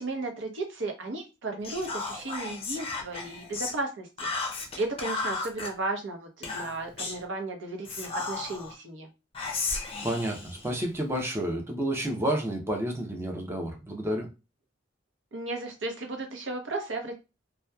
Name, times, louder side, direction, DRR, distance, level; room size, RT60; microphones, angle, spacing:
voice 1, 0.0-4.3 4.8-9.1 15.3-17.1, right 2 dB, 75° right, 3 dB, 0.7 m, -34 dB
Whispering, 1.6-3.8 4.2-5.7 6.4-7.2 7.8-8.7 9.3-11.2, left 3 dB, 30° left, 0.5 m, -34 dB
voice 2, 10.0-14.3, right 1 dB, 15° right, 1 dB, 0.6 m, -30 dB
2.7 x 2.2 x 2.2 m, 0.27 s
head